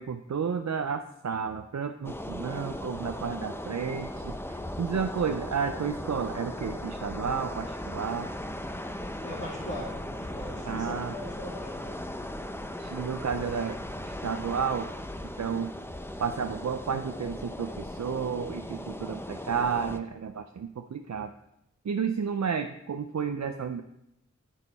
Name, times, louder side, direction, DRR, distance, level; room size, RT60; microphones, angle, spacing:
voice 1, 0.0-8.3 10.7-11.1 12.8-13.8 14.0-14.9 15.4-15.7 16.2-21.3 21.8-23.8, right 6 dB, 65° right, 7 dB, 0.5 m, -32 dB
sound 1, 2.0-20.0, left 1 dB, 10° left, 0.6 m, -38 dB
voice 2, 9.2-12.0, left 1 dB, 40° left, -8 dB, 2.8 m, -40 dB
9.9 x 7.3 x 4.1 m, 0.81 s
wide cardioid pair, 45°, 29 cm